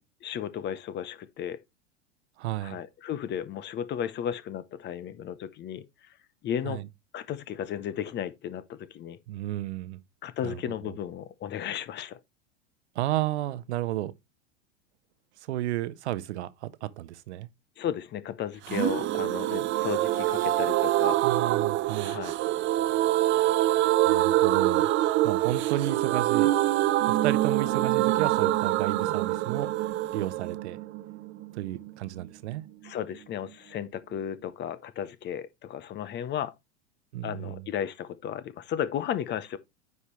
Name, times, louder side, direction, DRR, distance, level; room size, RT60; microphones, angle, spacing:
voice 1, 0.0-1.6 2.6-5.8 6.4-6.8 7.1-9.2 10.2-12.2 17.8-21.2 22.0-22.4 32.8-36.5 37.2-39.6, left 9 dB, 30° left, 0.8 m, -34 dB
voice 2, 2.4-2.8 6.6-6.9 9.3-10.0 10.4-10.6 12.9-14.1 15.5-17.5 21.2-22.2 24.0-24.9 25.2-26.5 27.1-29.7 30.1-30.8 31.5-32.6 37.1-37.6, right 14 dB, 65° right, 0.8 m, -32 dB
sound 1, 18.7-32.3 32.5-32.6 32.9-33.0, right 15 dB, 35° right, 0.7 m, -25 dB
9.5 x 5.5 x 3.1 m
hypercardioid pair, 95°, 36 cm